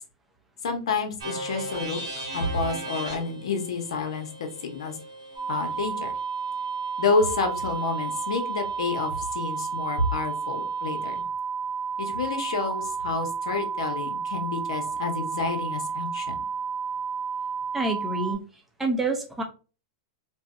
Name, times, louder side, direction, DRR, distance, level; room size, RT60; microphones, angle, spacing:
voice 1, 0.6-2.0 2.3-5.0 5.5-6.1 7.0-11.2 12.0-16.4, left 4 dB, 80° left, 5 dB, 0.7 m, -29 dB
sound 1, 1.2-9.1, right 2 dB, 90° right, 1.1 m, -39 dB
sound 2, 5.4-18.4, right 6 dB, 40° right, 0.8 m, -31 dB
voice 2, 17.7-18.4 18.8-19.4, right 2 dB, 10° right, 3 dB, 0.5 m, -27 dB
2.6 x 2.1 x 2.3 m, 0.34 s
hypercardioid pair, 135°, 3 cm